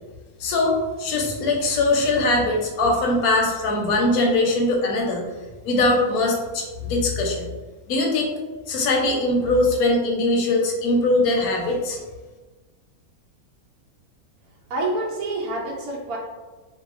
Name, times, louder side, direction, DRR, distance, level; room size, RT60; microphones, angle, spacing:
voice 1, 0.4-5.2 5.6-7.5 7.9-8.3 8.7-12.0, left 2 dB, 85° left, 0 dB, 1.1 m, -21 dB
voice 2, 14.7-16.2, right 2 dB, 85° right, -1 dB, 1.2 m, -27 dB
2.7 x 2.5 x 2.4 m, 1.3 s
omnidirectional pair, 1.5 m